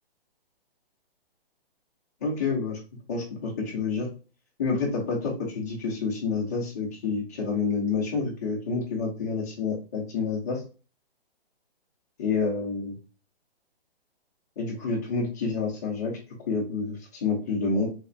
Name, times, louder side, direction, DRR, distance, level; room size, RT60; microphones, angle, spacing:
voice 1, 2.2-2.8 3.1-4.1 4.6-10.6 12.2-13.0 14.6-16.2 16.5-17.9, left 4 dB, 15° left, -3 dB, 0.6 m, -28 dB
3.3 x 2.7 x 2.5 m, 0.36 s
hypercardioid pair, 165°, 31 cm